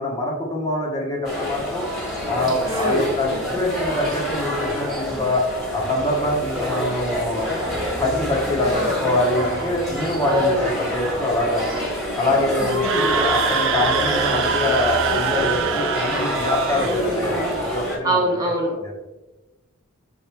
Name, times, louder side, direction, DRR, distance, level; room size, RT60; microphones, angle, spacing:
voice 1, 0.0-1.9 2.3-5.4 5.7-7.5 8.0-11.6 12.2-17.4 17.7-18.2 18.8-18.9, left 1 dB, 20° left, -2 dB, 1.0 m, -24 dB
sound 1, 1.2-18.0, equal, ahead, 1.5 m, -27 dB
voice 2, 2.7-3.1 8.7-9.1 10.2-10.9 12.6-13.1 16.7-17.6 18.0-18.7, equal, 15° right, -1 dB, 1.1 m, -24 dB
Screaming, 12.7-17.0, right 6 dB, 60° right, 0.5 m, -24 dB
6.4 x 4.4 x 3.3 m, 1.1 s
head